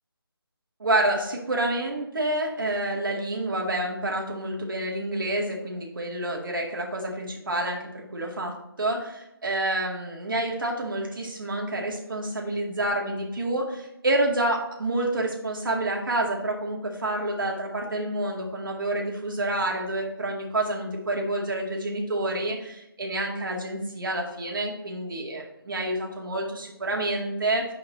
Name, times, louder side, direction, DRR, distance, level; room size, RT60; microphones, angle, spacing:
voice 1, 0.8-27.7, right 1 dB, 60° right, 0 dB, 2.1 m, -28 dB
6.7 x 5.3 x 4.1 m, 0.87 s
figure-of-eight pair, 160°, 13 cm